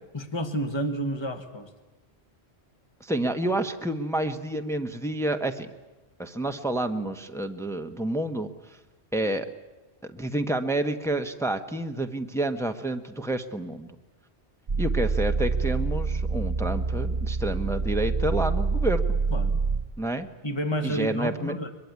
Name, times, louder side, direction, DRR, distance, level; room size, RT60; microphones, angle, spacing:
voice 1, 0.1-1.7 19.3-19.6 20.4-21.7, equal, 25° left, 8 dB, 1.8 m, -30 dB
voice 2, 3.0-5.7 6.2-8.8 9.1-9.5 10.1-13.9 14.8-19.2 20.0-20.3 20.8-21.5, right 1 dB, 5° left, 6 dB, 1.2 m, -29 dB
sound 1, 14.7-19.9, right 4 dB, 45° right, 1.1 m, -26 dB
23.0 x 22.0 x 9.5 m, 1.1 s
omnidirectional pair, 1.2 m